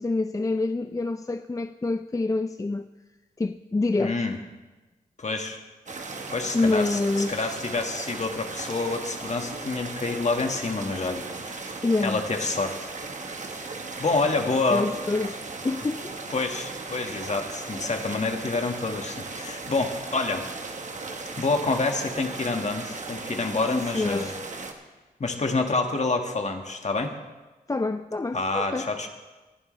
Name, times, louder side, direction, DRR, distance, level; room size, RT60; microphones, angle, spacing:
voice 1, 0.0-2.9 3.4-4.3 6.5-7.6 11.8-12.2 14.7-16.1 23.7-24.4 27.7-28.9, left 3 dB, 20° left, 0.4 m, -27 dB
voice 2, 4.0-4.4 5.2-5.6 6.3-7.0 7.3-11.7 12.0-12.9 13.5-14.9 16.3-20.5 21.4-24.3 25.2-27.1 28.3-29.1, left 3 dB, 45° left, 1.8 m, -28 dB
sound 1, 5.9-24.7, right 3 dB, 50° right, 1.4 m, -37 dB
19.5 x 11.5 x 3.3 m
cardioid pair, 50°, 16 cm